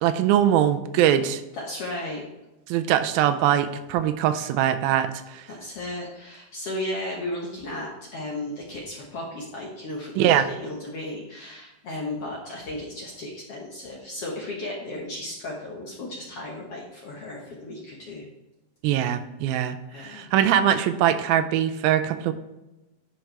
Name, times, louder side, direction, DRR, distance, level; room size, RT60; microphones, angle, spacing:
voice 1, 0.0-1.4 2.7-5.4 10.2-10.5 18.8-22.3, right 10 dB, 85° right, 9 dB, 2.4 m, -22 dB
voice 2, 1.5-2.2 5.5-18.2 19.9-20.3, left 1 dB, 60° left, -3 dB, 1.6 m, -35 dB
10.5 x 4.7 x 4.5 m, 0.99 s
omnidirectional pair, 4.2 m